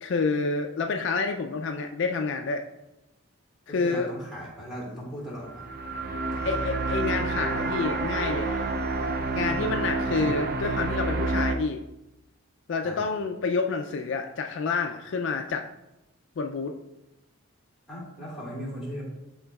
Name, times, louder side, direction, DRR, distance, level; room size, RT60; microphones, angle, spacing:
voice 1, 0.0-2.6 3.7-4.1 6.4-8.7 9.3-11.8 12.7-15.7 16.4-16.7, left 4 dB, 55° left, 4 dB, 0.3 m, -28 dB
voice 2, 3.7-5.6 6.0-6.6 10.1-10.2 12.8-13.1 17.9-19.0, equal, ahead, -6 dB, 2.0 m, -38 dB
sound 1, 5.4-11.6, right 3 dB, 45° right, 0.4 m, -28 dB
11.5 x 3.8 x 2.3 m, 0.94 s
head